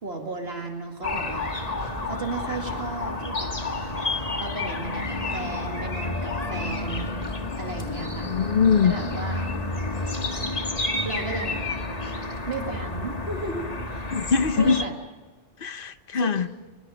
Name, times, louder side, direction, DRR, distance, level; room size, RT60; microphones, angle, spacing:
voice 1, 0.0-1.5 2.0-3.5 4.4-7.1 7.6-8.3 8.8-9.5 11.0-11.6 12.5-14.1 14.6-14.9 16.1-16.5, right 3 dB, 65° right, 2 dB, 2.4 m, -34 dB
sound 1, 1.0-14.9, left 2 dB, 35° left, 1.7 m, -30 dB
voice 2, 8.2-8.9 14.1-14.8 15.6-16.5, left 6 dB, 55° left, 12 dB, 1.1 m, -22 dB
24.0 x 22.0 x 6.3 m, 1.2 s
omnidirectional pair, 1.1 m